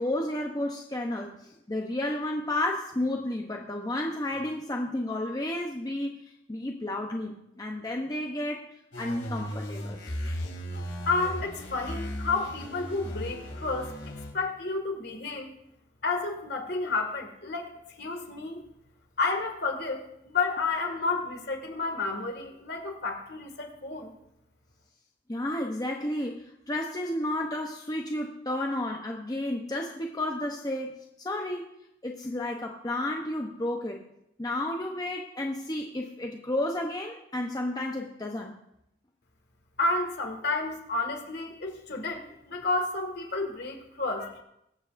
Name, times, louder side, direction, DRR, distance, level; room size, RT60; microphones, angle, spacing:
voice 1, 0.0-6.2 6.5-8.6 9.0-10.0 25.3-31.7 32.0-34.0 34.4-38.5, left 1 dB, 20° left, 1 dB, 0.8 m, -32 dB
sound 1, 8.9-14.3, equal, 90° left, 2.4 m, -36 dB
voice 2, 11.1-13.9 14.3-15.5 16.0-17.7 18.0-18.6 19.2-24.1 39.8-44.4, left 3 dB, 60° left, 3 dB, 2.0 m, -31 dB
23.0 x 7.9 x 2.6 m, 0.79 s
head